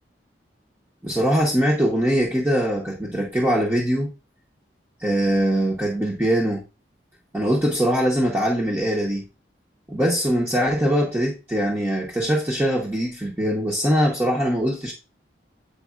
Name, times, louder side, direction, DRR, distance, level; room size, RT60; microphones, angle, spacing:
voice 1, 1.0-4.1 5.0-6.6 7.3-9.2 9.9-14.9, equal, 10° right, 1.0 m, -22 dB
8.3 x 4.8 x 2.5 m
head